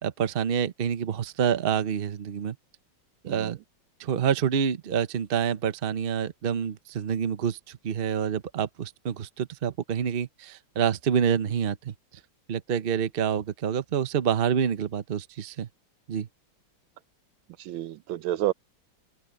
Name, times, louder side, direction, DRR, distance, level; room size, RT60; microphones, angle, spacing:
voice 1, 0.0-2.6 3.2-3.6 4.0-11.9 12.5-15.7 16.1-16.3, right 8 dB, 45° right, 0.7 m, -27 dB
voice 2, 17.6-18.5, right 13 dB, 90° right, 1.5 m, -29 dB
open air
omnidirectional pair, 2.2 m